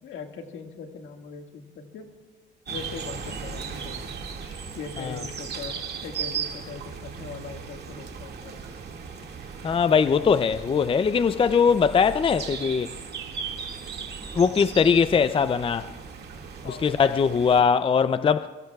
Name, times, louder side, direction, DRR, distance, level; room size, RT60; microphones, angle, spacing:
voice 1, 0.0-2.1 2.7-4.1 4.7-5.8 6.0-8.6 16.6-16.9, left 5 dB, 80° left, 1.9 m, -40 dB
sound 1, 2.7-17.6, right 6 dB, 55° right, 2.1 m, -37 dB
voice 2, 9.6-12.9 14.3-15.9 16.7-18.5, left 6 dB, 25° left, 0.4 m, -21 dB
25.5 x 24.0 x 2.4 m
cardioid pair, 90°, 20 cm